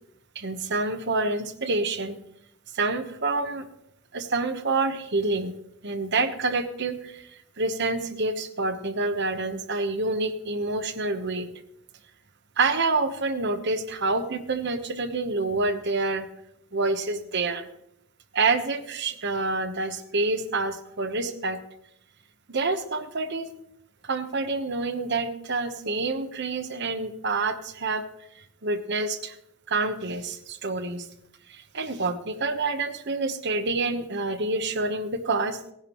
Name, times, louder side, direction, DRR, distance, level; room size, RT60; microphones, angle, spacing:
voice 1, 0.3-2.2 2.7-3.7 4.1-5.5 5.8-7.3 7.6-11.5 12.6-16.3 16.7-17.7 18.3-21.6 22.5-23.5 24.0-28.0 28.6-29.4 29.7-31.1 31.5-35.7, right 3 dB, 55° right, 8 dB, 1.1 m, -27 dB
18.0 x 10.5 x 3.1 m, 0.75 s
head